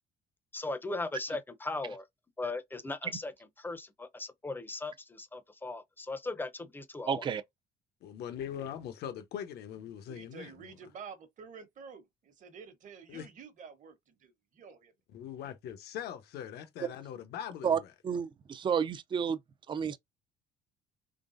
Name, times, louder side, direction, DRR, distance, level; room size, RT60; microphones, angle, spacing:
voice 1, 0.5-2.0 2.4-3.3 3.6-7.2, left 3 dB, 10° left, 0.6 m, -38 dB
voice 2, 7.1-7.4 17.6-19.4 19.7-20.0, right 7 dB, 30° right, 0.4 m, -31 dB
voice 3, 8.0-10.7 13.1-13.3 15.1-17.9, left 9 dB, 75° left, 0.9 m, -41 dB
voice 4, 10.1-14.9, right 6 dB, 50° right, 1.1 m, -49 dB
3.8 x 3.4 x 2.5 m
cardioid pair, 110°, 17 cm